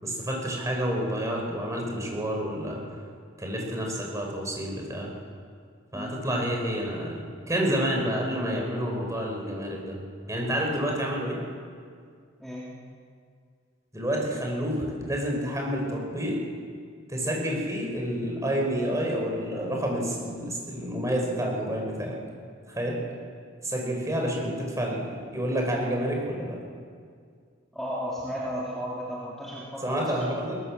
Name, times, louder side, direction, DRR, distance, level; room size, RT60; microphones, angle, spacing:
voice 1, 0.0-2.8 3.4-5.1 5.9-10.0 10.3-11.4 13.9-16.4 17.1-22.2 22.7-23.0 23.6-26.6 29.8-30.5, equal, 15° right, -1 dB, 5.4 m, -29 dB
voice 2, 5.9-6.5 12.4-12.7 27.7-30.5, equal, ahead, -7 dB, 3.2 m, -35 dB
21.0 x 21.0 x 7.5 m, 2.1 s
head